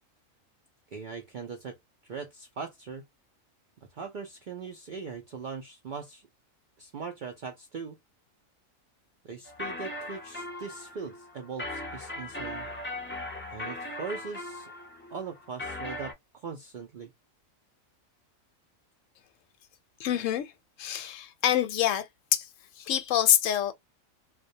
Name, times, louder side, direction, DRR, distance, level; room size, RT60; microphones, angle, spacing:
voice 1, 0.9-1.8 2.0-3.0 3.9-6.2 6.8-8.0 9.2-12.7 13.5-14.7 15.1-17.1, right 5 dB, 70° right, 0.4 m, -40 dB
sound 1, 9.5-16.1, left 1 dB, 15° left, 0.4 m, -38 dB
voice 2, 20.0-20.5 20.8-22.1 22.3-22.5 22.8-23.7, left 11 dB, 75° left, 0.9 m, -26 dB
2.3 x 2.1 x 2.6 m
omnidirectional pair, 1.4 m